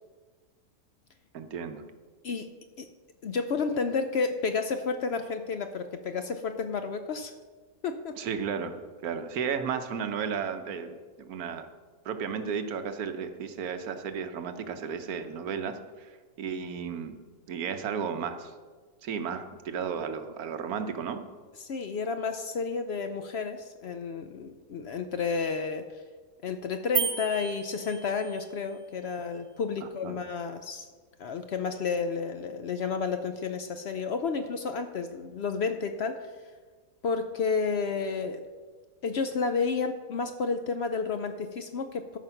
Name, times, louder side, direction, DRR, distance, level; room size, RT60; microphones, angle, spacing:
voice 1, 1.3-1.8 8.2-8.7 9.0-11.7 12.0-16.1 16.4-17.2 17.5-18.5 19.0-21.2 29.8-30.2, right 6 dB, 85° right, 8 dB, 1.3 m, -34 dB
voice 2, 2.2-2.9 3.2-7.3 7.8-8.2 21.6-26.0 26.4-30.9 31.2-36.3 37.0-38.4 39.0-42.2, left 5 dB, 60° left, 7 dB, 0.7 m, -31 dB
sound 1, 26.9-28.5, right 8 dB, 45° right, 1.0 m, -33 dB
13.0 x 5.1 x 5.7 m, 1.5 s
omnidirectional pair, 1.5 m